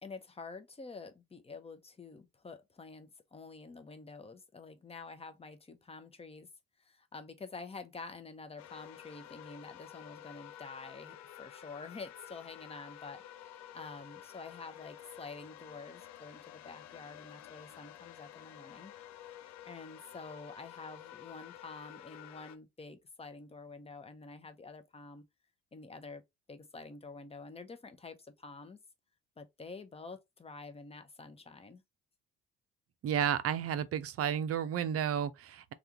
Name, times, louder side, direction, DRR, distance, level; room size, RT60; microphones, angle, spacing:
voice 1, 0.0-6.5 6.8-13.2 13.7-18.9 19.6-25.2 25.7-26.2 26.5-28.8 29.4-31.8, left 4 dB, 15° left, 0.8 m, -48 dB
sound 1, 8.6-22.6, left 11 dB, 50° left, 0.6 m, -51 dB
voice 2, 33.0-35.7, right 9 dB, 45° right, 0.6 m, -32 dB
3.4 x 2.4 x 2.8 m
hypercardioid pair, 55°, 34 cm